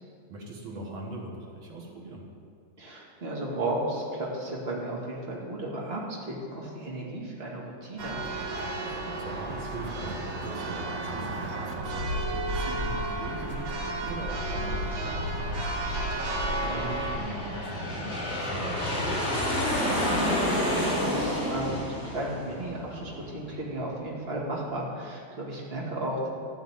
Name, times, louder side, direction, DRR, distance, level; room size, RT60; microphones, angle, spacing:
voice 1, 0.3-2.2 8.8-16.0 16.5-19.9, right 2 dB, 85° right, -1 dB, 2.4 m, -41 dB
voice 2, 2.8-8.2 16.6-16.9 20.5-26.3, right 1 dB, 30° right, -4 dB, 2.5 m, -34 dB
Church bell, 8.0-17.2, right 1 dB, 65° right, 1.9 m, -32 dB
Aircraft, 12.6-23.7, left 1 dB, 25° left, 3.8 m, -31 dB
14.5 x 5.7 x 8.9 m, 2.2 s
omnidirectional pair, 2.2 m